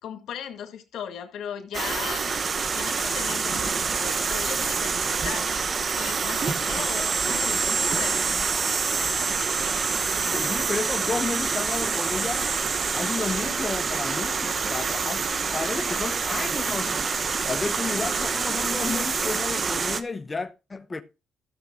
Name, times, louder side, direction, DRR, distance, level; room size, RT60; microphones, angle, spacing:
voice 1, 0.0-2.3 2.7-5.7 5.9-8.8, left 9 dB, 80° left, 1.8 m, -37 dB
sound 1, 1.7-20.0, right 5 dB, 40° right, 1.1 m, -26 dB
voice 2, 10.3-12.5 12.9-15.2 15.5-16.9 17.5-21.0, left 4 dB, 25° left, 1.0 m, -32 dB
13.5 x 6.9 x 3.7 m
cardioid pair, 90°, 0 cm